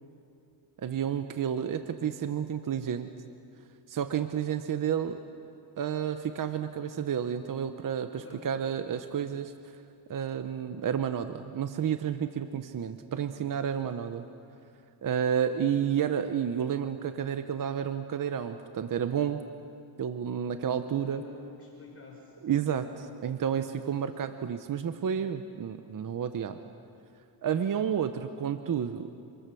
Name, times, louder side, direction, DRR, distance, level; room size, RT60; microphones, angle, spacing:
voice 1, 0.8-3.1 3.9-5.2 5.8-9.7 10.1-14.2 15.0-19.4 20.0-21.2 22.4-26.6 27.4-29.2, right 8 dB, 45° right, 9 dB, 1.0 m, -31 dB
voice 2, 8.1-8.5 13.4-13.8 21.0-22.4 23.7-24.0, left 5 dB, 30° left, 0 dB, 4.5 m, -50 dB
27.0 x 24.0 x 7.0 m, 2.6 s
cardioid pair, 110°, 47 cm